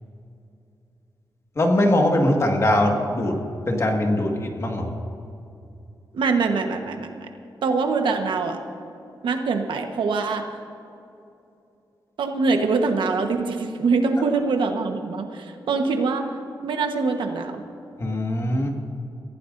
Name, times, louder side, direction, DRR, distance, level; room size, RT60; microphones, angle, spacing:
voice 1, 1.5-3.4 3.7-4.9 18.0-18.8, left 1 dB, 35° left, 2 dB, 1.8 m, -21 dB
voice 2, 6.1-7.1 7.6-8.6 9.2-10.4 12.2-16.3 16.6-17.6, right 4 dB, 85° right, 4 dB, 1.3 m, -23 dB
24.0 x 16.0 x 2.7 m, 2.7 s
wide cardioid pair, 125°, 8 cm